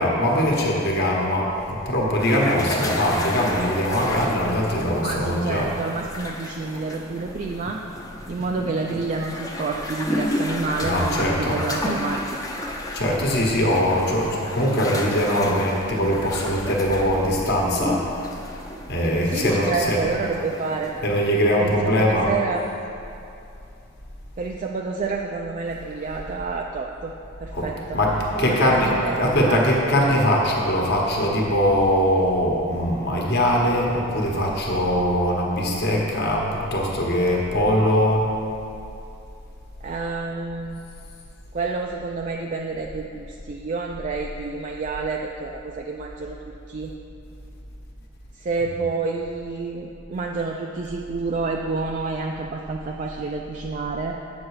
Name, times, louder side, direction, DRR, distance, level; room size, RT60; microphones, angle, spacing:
voice 1, 0.0-5.7 10.8-11.6 12.9-18.3 18.9-20.0 21.0-22.3 27.5-27.7 27.9-28.9 29.2-38.3, equal, 50° left, -2 dB, 1.1 m, -21 dB
sound 1, 2.2-21.0, left 1 dB, 15° left, 0.6 m, -32 dB
voice 2, 5.0-7.8 8.3-12.4 19.3-20.9 21.6-22.7 24.4-27.1 27.4-28.0 28.4-29.6 39.8-40.9 41.5-46.9 48.3-54.2, right 4 dB, 35° right, 0 dB, 0.3 m, -29 dB
8.2 x 6.1 x 4.8 m, 2.7 s
head